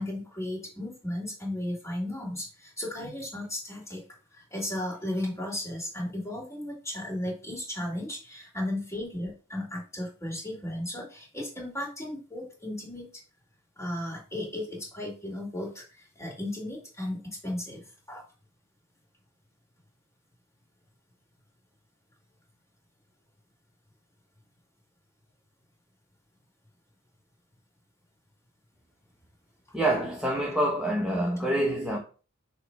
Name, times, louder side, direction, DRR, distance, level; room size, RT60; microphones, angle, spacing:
voice 1, 0.0-4.0 4.3-13.1 13.8-18.2, left 1 dB, 15° left, 2.7 m, -35 dB
voice 2, 29.7-32.0, right 1 dB, 5° right, 0.9 m, -26 dB
6.6 x 3.1 x 4.7 m
head